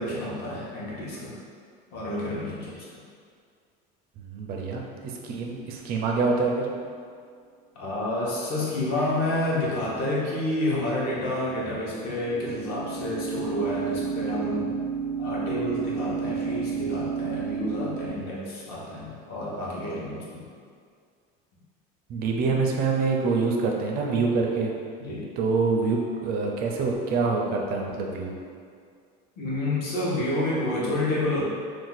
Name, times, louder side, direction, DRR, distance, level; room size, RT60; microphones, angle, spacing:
voice 1, 0.0-1.4 1.9-2.8 7.8-14.7 15.2-20.5 25.0-25.3 29.4-31.4, left 1 dB, 50° left, -6 dB, 0.9 m, -29 dB
voice 2, 4.2-6.7 22.1-24.7 25.4-28.3, right 4 dB, 50° right, 0 dB, 0.4 m, -26 dB
sound 1, 5.5-5.9 11.9-18.1, right 6 dB, 85° left, 1.4 m, -31 dB
2.5 x 2.3 x 3.9 m, 2.2 s
cardioid pair, 145°, 20 cm